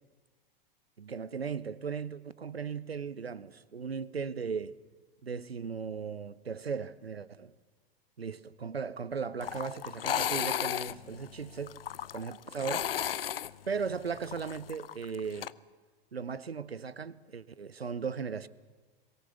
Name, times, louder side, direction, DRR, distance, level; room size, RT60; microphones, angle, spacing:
voice 1, 1.0-4.8 5.2-7.5 8.2-11.8 12.1-12.9 13.7-15.5 16.1-18.5, right 6 dB, 85° right, 0.8 m, -37 dB
sound 1, 9.4-15.5, left 10 dB, 70° left, 0.6 m, -35 dB
22.5 x 18.0 x 7.0 m
figure-of-eight pair, 90°, 30 cm